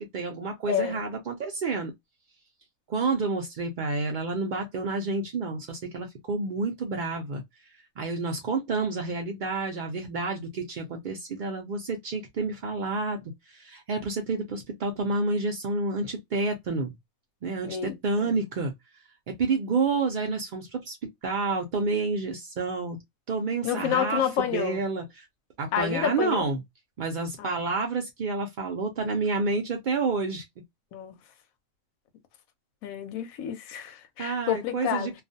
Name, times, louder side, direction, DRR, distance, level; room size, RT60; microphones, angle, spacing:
voice 1, 0.0-1.9 2.9-7.4 8.0-13.2 13.5-16.9 17.4-18.7 19.4-21.0 21.2-23.0 23.3-25.3 25.6-26.6 27.0-30.4 34.2-35.2, right 3 dB, 75° right, 0.4 m, -29 dB
voice 2, 0.7-1.0 17.6-18.0 18.2-18.3 23.6-24.8 25.7-26.5 27.4-27.6 30.9-31.1 32.8-35.1, left 9 dB, 85° left, 1.0 m, -29 dB
2.4 x 2.2 x 2.6 m
omnidirectional pair, 1.4 m